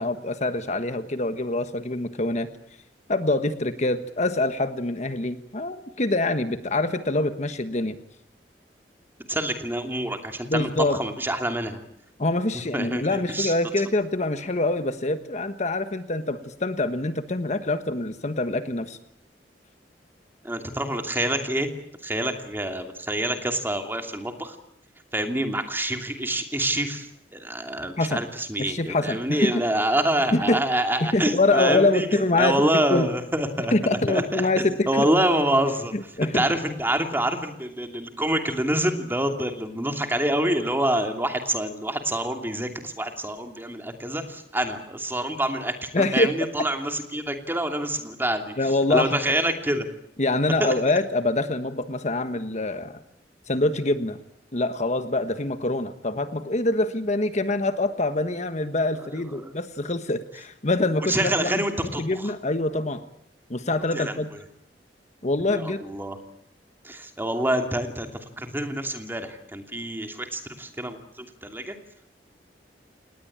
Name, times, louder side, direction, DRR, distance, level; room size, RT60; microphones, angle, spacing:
voice 1, 0.0-2.5 3.1-8.0 10.5-11.0 12.2-19.0 28.0-28.2 28.6-29.5 30.3-30.6 31.0-33.1 33.7-35.1 35.9-36.4 45.9-46.3 48.6-49.2 50.2-53.0 53.5-54.2 54.5-61.6 62.0-63.0 63.5-64.3 65.2-65.8, left 2 dB, 40° left, 10 dB, 1.3 m, -25 dB
voice 2, 9.3-11.8 12.7-13.5 20.4-21.7 22.0-24.6 25.1-35.9 36.3-49.9 50.6-50.7 58.9-59.5 61.1-62.3 63.9-64.4 65.5-66.2 66.8-68.1 68.4-71.8, right 1 dB, 15° right, 5 dB, 2.8 m, -27 dB
28.0 x 19.5 x 8.7 m, 0.74 s
head